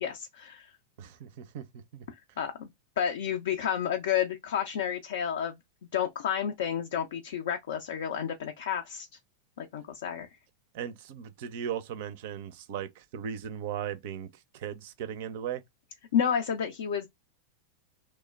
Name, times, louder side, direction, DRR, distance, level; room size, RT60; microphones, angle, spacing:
voice 1, 0.0-0.7 2.1-2.7 3.0-5.5 5.9-9.1 9.6-10.3 16.1-17.1, left 8 dB, 65° left, 0.4 m, -30 dB
voice 2, 1.0-1.7 1.9-2.0 10.7-14.3 14.5-15.6, right 9 dB, 55° right, 0.4 m, -37 dB
3.1 x 2.1 x 2.2 m
figure-of-eight pair, 90°, 0 cm